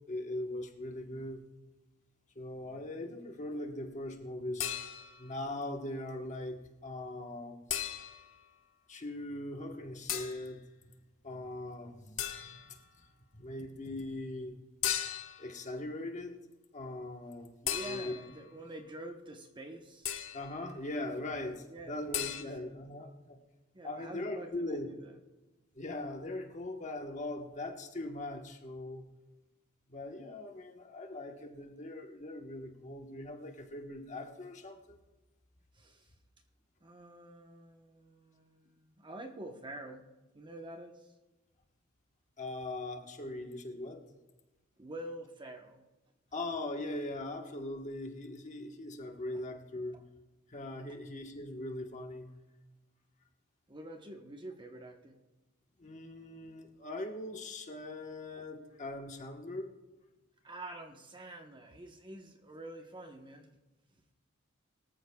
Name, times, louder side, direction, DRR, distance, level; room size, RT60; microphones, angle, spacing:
voice 1, 0.1-1.4 2.3-4.7 5.2-7.6 8.9-10.6 11.2-12.8 13.3-14.6 15.4-16.4 16.7-17.5 17.8-18.1 20.3-23.4 23.8-24.9 25.7-29.0 29.9-35.0 42.4-44.0 46.3-50.0 50.5-52.3 55.8-59.7, left 1 dB, 35° left, 3 dB, 1.2 m, -40 dB
sound 1, 4.6-5.3 7.7-8.3 10.1-10.5 12.2-12.7 14.8-15.5 17.7-18.4 20.0-20.5 22.1-22.4, left 10 dB, 65° left, 1.3 m, -36 dB
voice 2, 17.6-20.1 21.7-22.0 22.4-22.6 23.7-25.2 35.7-36.1 36.8-40.1 40.3-41.1 44.8-45.9 49.3-49.5 49.9-50.0 50.9-51.0 53.7-55.2 60.4-63.6 63.9-64.1, right 1 dB, 25° right, 4 dB, 1.0 m, -47 dB
23.0 x 14.0 x 2.3 m, 1.1 s
head